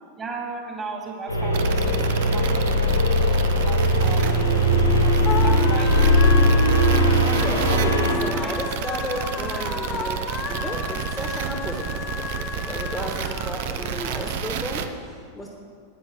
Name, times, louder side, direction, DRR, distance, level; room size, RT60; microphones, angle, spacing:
voice 1, 0.2-2.0 2.3-2.9 3.3-3.4 3.7-4.6 4.9-6.3, right 3 dB, 20° right, 1 dB, 2.3 m, -36 dB
sound 1, 1.3-8.1, equal, 85° left, 1.9 m, -19 dB
sound 2, 1.5-14.9, right 8 dB, 50° right, 0.7 m, -30 dB
sound 3, 3.8-14.3, left 5 dB, 25° left, 0.8 m, -34 dB
voice 2, 7.2-15.5, equal, 5° left, 0 dB, 1.4 m, -33 dB
10.0 x 9.8 x 6.3 m, 2.1 s
figure-of-eight pair, 90°, 0 cm